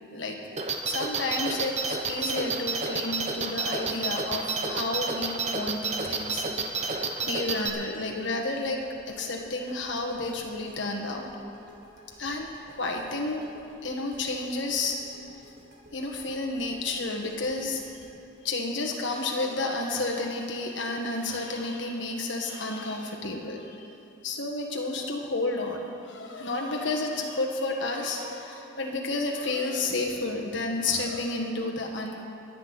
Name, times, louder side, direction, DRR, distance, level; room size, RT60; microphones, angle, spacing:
sound 1, 0.6-7.7, right 4 dB, 35° right, 0.8 m, -30 dB
voice 1, 0.8-8.8 9.1-11.3 12.2-13.4 13.8-15.0 15.9-17.8 18.4-23.9 24.2-32.3, left 2 dB, 70° left, 1 dB, 1.5 m, -31 dB
sound 2, 7.1-19.8, right 1 dB, 85° right, 3.8 m, -53 dB
24.0 x 8.4 x 4.1 m, 2.6 s
head